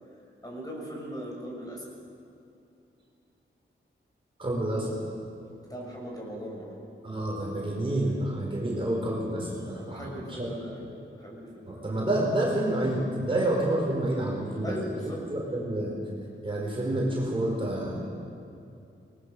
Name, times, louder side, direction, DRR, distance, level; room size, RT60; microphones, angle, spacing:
voice 1, 0.4-1.8 5.5-6.8 9.7-10.9 11.1-12.0 14.6-15.2, equal, 20° left, -3 dB, 6.8 m, -39 dB
voice 2, 4.4-5.0 7.0-10.5 11.7-14.9 15.3-15.9 16.4-18.0, right 1 dB, 25° right, -3 dB, 4.6 m, -28 dB
28.0 x 20.5 x 6.6 m, 2.6 s
wide cardioid pair, 140°, 21 cm